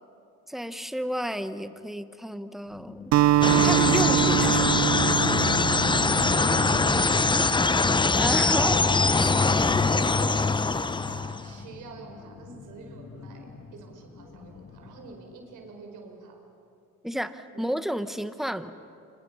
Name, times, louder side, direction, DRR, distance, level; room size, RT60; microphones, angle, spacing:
voice 1, 0.5-3.1 3.6-4.8 8.2-8.8 17.0-18.7, equal, ahead, 11 dB, 1.2 m, -31 dB
sound 1, 2.6-15.2, left 4 dB, 50° left, 2.0 m, -47 dB
Acoustic guitar, 3.1-7.6, right 13 dB, 65° right, 0.5 m, -24 dB
sound 2, 3.4-11.5, left 3 dB, 15° left, 0.7 m, -23 dB
voice 2, 6.2-7.9 8.5-13.5 13.7-16.4 17.5-17.7, right 4 dB, 85° right, 2 dB, 5.0 m, -44 dB
28.0 x 27.5 x 5.7 m, 2.6 s
cardioid pair, 90°, 30 cm